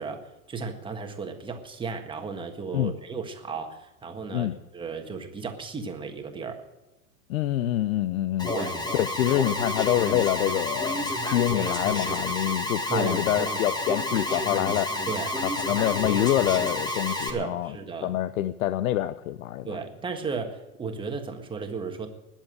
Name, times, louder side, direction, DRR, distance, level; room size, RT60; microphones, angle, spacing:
voice 1, 0.0-6.6 8.5-8.7 12.9-13.5 15.1-15.3 17.1-18.2 19.6-22.1, right 5 dB, 10° right, 5 dB, 1.6 m, -35 dB
voice 2, 7.3-8.5 8.9-14.9 15.4-17.7 18.0-19.8, left 13 dB, 65° left, 14 dB, 0.7 m, -26 dB
Alarm, 8.4-17.3, left 1 dB, 10° left, 1.6 m, -29 dB
20.0 x 7.4 x 7.8 m, 1.1 s
hypercardioid pair, 140°, 44 cm